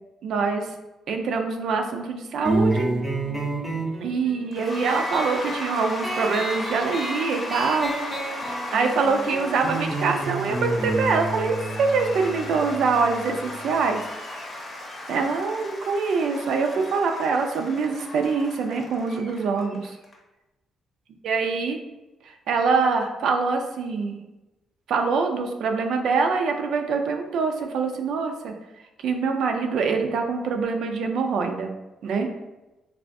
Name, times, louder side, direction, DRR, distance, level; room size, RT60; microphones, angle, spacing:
voice 1, 0.2-0.7 1.1-2.9 4.0-8.4 8.7-14.0 15.1-20.0 21.2-21.8 22.2-24.2 24.9-28.5 29.0-31.7 32.0-32.3, right 4 dB, 75° right, 4 dB, 0.4 m, -24 dB
sound 1, 2.4-13.6, right 2 dB, 5° right, 0.7 m, -30 dB
Cheering / Applause / Crowd, 4.5-20.1, left 1 dB, 40° left, 0.7 m, -36 dB
3.3 x 2.4 x 2.6 m, 1.0 s
cardioid pair, 90°, 0 cm